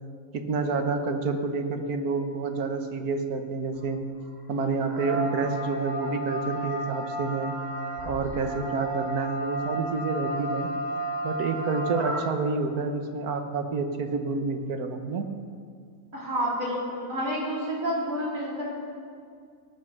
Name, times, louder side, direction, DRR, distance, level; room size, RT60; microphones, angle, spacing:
voice 1, 0.3-4.0 4.5-7.5 8.0-10.7 11.2-15.3, right 4 dB, 80° right, 6 dB, 1.6 m, -29 dB
sound 1, 3.7-3.8 4.8-12.2, right 1 dB, 25° right, 3.1 m, -32 dB
voice 2, 16.1-18.7, equal, 65° right, -5 dB, 4.1 m, -29 dB
17.0 x 8.9 x 6.6 m, 2.2 s
omnidirectional pair, 1.6 m